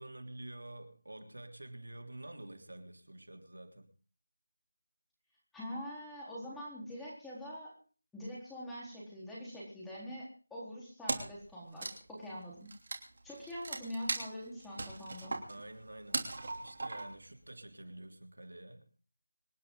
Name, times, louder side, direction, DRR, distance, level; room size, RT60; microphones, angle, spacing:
voice 1, 0.0-3.9 15.5-16.3 16.6-18.9, right 1 dB, 80° right, 5 dB, 3.2 m, -48 dB
voice 2, 5.5-7.7 8.1-12.7 13.2-15.4, equal, 5° left, -7 dB, 3.9 m, -44 dB
Wood, 11.1-11.4 11.7-17.3, right 3 dB, 45° right, 3.0 m, -39 dB
26.0 x 10.0 x 3.9 m, 0.40 s
figure-of-eight pair, 170°, 0 cm